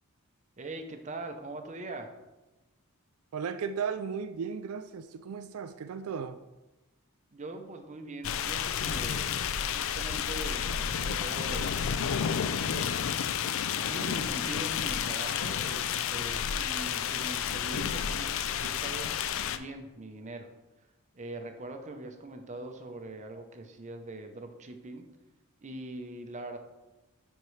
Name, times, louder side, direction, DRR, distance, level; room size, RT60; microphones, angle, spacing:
voice 1, 0.6-2.1 7.3-13.2 13.9-20.5 21.1-25.1 25.6-26.6, right 2 dB, 35° right, 5 dB, 0.7 m, -42 dB
voice 2, 3.3-6.4, right 6 dB, 75° right, 10 dB, 0.4 m, -35 dB
sound 1, 8.2-19.6, left 8 dB, 65° left, 0.4 m, -31 dB
10.5 x 4.5 x 3.2 m, 1.1 s
head